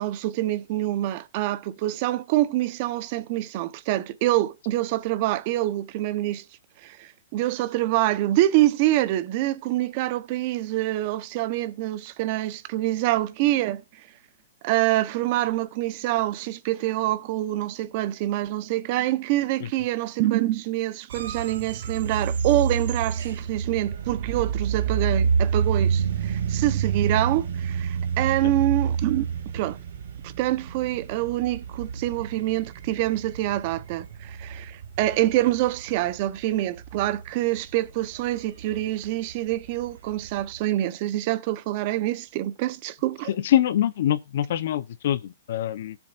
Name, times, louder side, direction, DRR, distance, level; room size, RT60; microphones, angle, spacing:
voice 1, 0.0-6.4 6.8-13.8 14.6-29.2 29.5-29.8 30.2-43.3, right 15 dB, 40° right, 0.9 m, -26 dB
sound 1, 21.1-40.6, right 6 dB, 70° right, 2.6 m, -29 dB
voice 2, 43.3-46.0, left 11 dB, 55° left, 0.8 m, -24 dB
16.0 x 7.2 x 2.5 m
hypercardioid pair, 155°, 0 cm